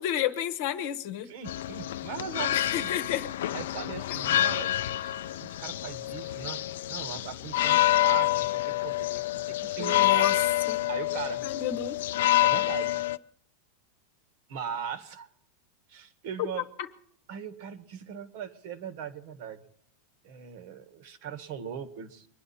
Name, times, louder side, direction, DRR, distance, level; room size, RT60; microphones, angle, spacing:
voice 1, 0.0-1.3 2.5-3.3 4.4-4.5 9.8-10.4 10.7-10.8 11.4-12.0 16.4-16.5, left 11 dB, 50° left, 8 dB, 1.1 m, -31 dB
voice 2, 1.2-2.9 3.5-4.7 5.0-6.6 6.9-10.3 10.9-11.4 12.4-13.0 14.5-15.3 15.9-16.6 17.3-19.6 20.2-22.3, right 7 dB, 45° right, 11 dB, 1.4 m, -39 dB
sound 1, 1.5-13.2, left 15 dB, 70° left, 0.5 m, -27 dB
24.0 x 10.5 x 4.2 m, 0.64 s
supercardioid pair, 175°, 0 cm